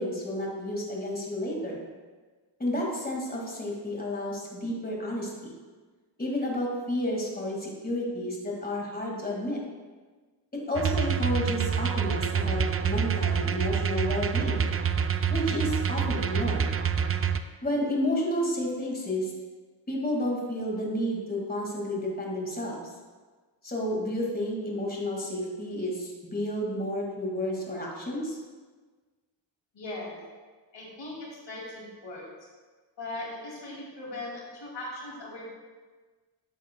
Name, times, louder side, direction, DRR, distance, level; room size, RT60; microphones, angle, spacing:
voice 1, 0.0-1.9 2.6-5.6 6.2-9.6 10.5-14.7 15.3-16.7 17.6-19.3 19.9-22.8 23.6-28.4, left 1 dB, 20° left, -2 dB, 2.0 m, -31 dB
sound 1, 10.8-17.4, right 7 dB, 35° right, 0.4 m, -27 dB
voice 2, 29.7-30.3 30.7-32.5 33.0-35.5, left 2 dB, 85° left, -4 dB, 2.5 m, -39 dB
11.5 x 7.3 x 2.2 m, 1.4 s
cardioid pair, 65°, 44 cm